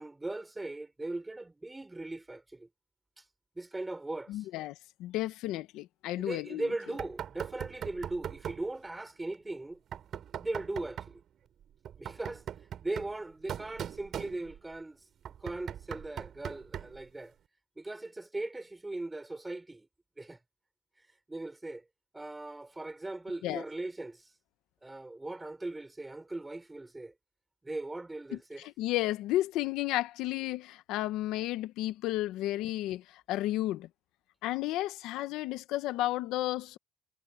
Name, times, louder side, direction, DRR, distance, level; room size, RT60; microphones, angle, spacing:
voice 1, 0.0-2.7 3.2-3.3 3.5-4.5 6.2-9.8 10.4-11.2 12.0-12.4 12.8-15.0 15.4-17.3 17.8-19.9 20.2-20.4 21.3-21.8 22.1-24.3 24.8-27.1 27.6-28.7, right 2 dB, 15° right, 4.7 m, -39 dB
voice 2, 4.3-4.7 5.0-6.7 23.4-23.6 28.3-33.9 34.4-36.8, left 15 dB, 85° left, 1.0 m, -32 dB
Knock, 7.0-8.7 9.9-11.2 11.8-14.7 15.2-17.0, right 9 dB, 60° right, 6.0 m, -41 dB
cardioid pair, 85°, 0 cm